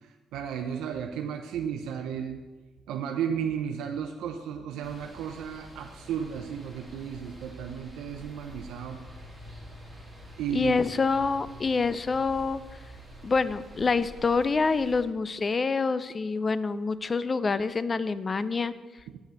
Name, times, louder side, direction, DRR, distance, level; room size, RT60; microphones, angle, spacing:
voice 1, 0.0-2.4 2.9-9.0 10.4-10.7, right 8 dB, 90° right, 4 dB, 0.6 m, -34 dB
sound 1, 4.8-15.0, equal, ahead, 2.8 m, -47 dB
voice 2, 10.5-12.6 13.2-18.7, left 4 dB, 35° left, 15 dB, 0.5 m, -26 dB
7.8 x 5.8 x 7.5 m, 1.3 s
cardioid pair, 90°, 0 cm